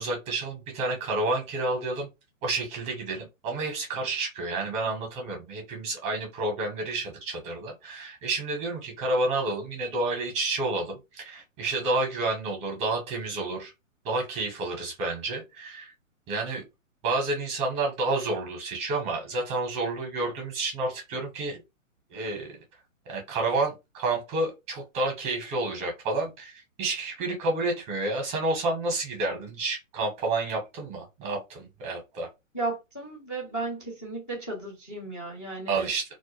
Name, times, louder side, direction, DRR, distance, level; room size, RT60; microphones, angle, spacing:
voice 1, 0.0-2.1 2.4-13.7 14.0-15.9 16.3-16.6 17.0-21.6 22.1-22.5 23.1-32.3 35.7-36.0, right 2 dB, 15° right, 0.8 m, -30 dB
voice 2, 32.5-35.9, right 2 dB, 15° left, 0.4 m, -34 dB
2.2 x 2.1 x 3.0 m
hypercardioid pair, 130°, 41 cm